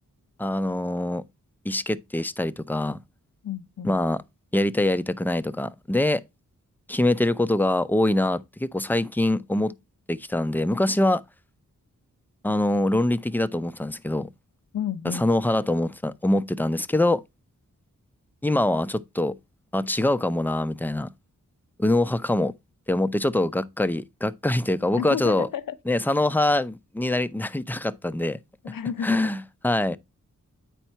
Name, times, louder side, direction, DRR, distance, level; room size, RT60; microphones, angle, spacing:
voice 1, 0.4-1.2 1.6-3.0 3.8-4.2 4.5-6.2 6.9-9.7 10.1-11.2 12.4-14.3 15.0-17.2 18.4-19.3 19.7-21.1 21.8-22.5 22.9-25.5 25.9-28.4 29.0-30.0, left 1 dB, 5° left, 0.6 m, -24 dB
voice 2, 3.4-4.0 14.7-15.3 25.0-25.8 28.6-29.2, left 8 dB, 85° left, 0.7 m, -31 dB
9.1 x 4.3 x 4.4 m
wide cardioid pair, 70°, 32 cm